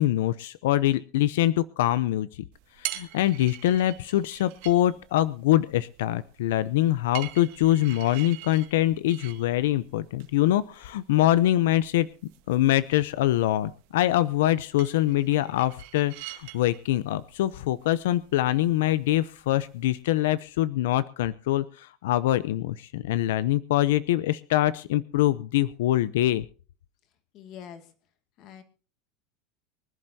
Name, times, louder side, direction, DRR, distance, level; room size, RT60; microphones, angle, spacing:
voice 1, 0.0-2.3 2.8-12.1 12.5-26.4, left 14 dB, 90° left, 16 dB, 0.6 m, -24 dB
sound 1, 2.5-20.0, right 16 dB, 60° right, 2.0 m, -45 dB
voice 2, 27.3-27.9 28.4-28.6, left 8 dB, 40° left, 8 dB, 2.1 m, -44 dB
24.5 x 11.0 x 2.7 m, 0.37 s
supercardioid pair, 170°, 0 cm